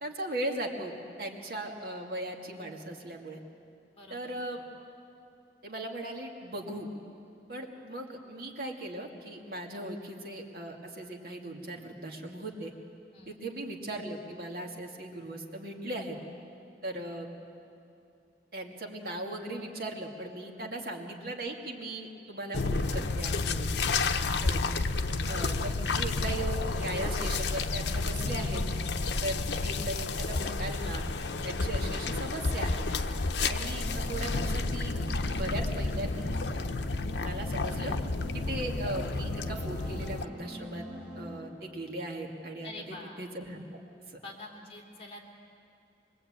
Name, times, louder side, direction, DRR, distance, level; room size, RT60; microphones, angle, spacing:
voice 1, 0.0-3.4 4.1-4.6 5.6-6.9 7.5-12.7 13.3-16.2 16.8-17.3 18.5-23.7 24.4-24.6 25.3-28.6 29.2-31.0 31.4-32.9 33.4-34.9 35.3-36.2 37.2-37.9 38.3-40.9 41.1-43.6 44.1-44.2, right 1 dB, 55° right, 1 dB, 2.3 m, -38 dB
voice 2, 3.9-4.5 13.1-13.4 42.6-43.3 44.2-45.2, left 2 dB, 35° left, 0 dB, 3.2 m, -46 dB
sound 1, 22.5-40.3, left 3 dB, 85° left, 0.8 m, -31 dB
sound 2, 33.5-41.4, left 1 dB, 5° right, 5.5 m, -43 dB
25.0 x 22.0 x 8.8 m, 2.6 s
head